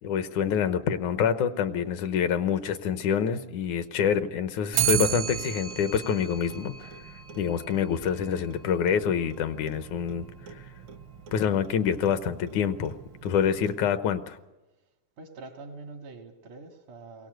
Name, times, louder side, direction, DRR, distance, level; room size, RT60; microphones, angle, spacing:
voice 1, 0.0-6.9 7.4-10.3 11.3-12.9 13.2-14.4, left 7 dB, 80° left, 11 dB, 2.4 m, -26 dB
Clock, 4.7-14.1, right 10 dB, 70° right, 1.3 m, -35 dB
voice 2, 15.2-17.3, right 3 dB, 85° right, 4 dB, 3.6 m, -44 dB
22.5 x 18.0 x 7.9 m, 1.1 s
omnidirectional pair, 3.4 m